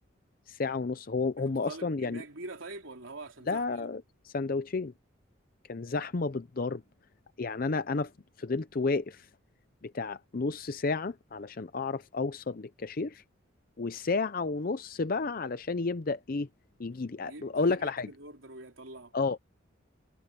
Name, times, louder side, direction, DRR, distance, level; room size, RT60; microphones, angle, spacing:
voice 1, 0.5-2.2 3.5-4.9 5.7-6.8 7.4-8.1 8.4-9.3 9.8-13.2 13.8-16.5 16.8-18.1 19.1-19.4, left 3 dB, 45° left, 0.5 m, -31 dB
voice 2, 1.4-3.9 17.2-19.1, right 2 dB, 75° right, 3.4 m, -45 dB
head